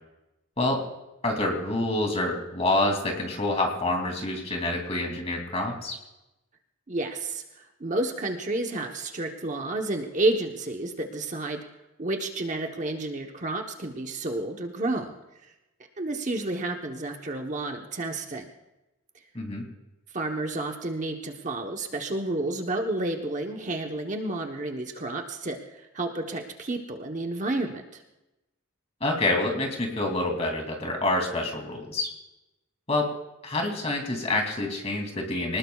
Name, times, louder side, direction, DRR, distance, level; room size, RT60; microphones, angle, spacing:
voice 1, 1.2-6.0 19.3-19.7 29.0-32.1 32.9-33.1 33.4-35.6, left 2 dB, 30° left, 1 dB, 2.7 m, -27 dB
voice 2, 6.9-7.4 7.8-11.6 12.0-15.2 16.0-18.5 20.1-25.6 25.9-28.0, right 2 dB, 35° right, 3 dB, 1.0 m, -30 dB
25.0 x 19.0 x 2.4 m, 0.95 s
head